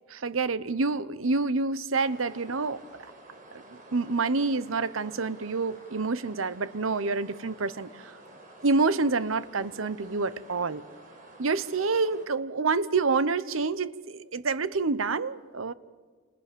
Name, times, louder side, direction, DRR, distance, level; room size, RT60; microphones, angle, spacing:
voice 1, 0.1-2.8 3.9-8.1 8.6-10.8 11.4-15.7, right 4 dB, 85° right, 0.9 m, -27 dB
sound 1, 2.0-12.3, right 1 dB, 40° right, 5.0 m, -50 dB
29.0 x 27.0 x 6.9 m
head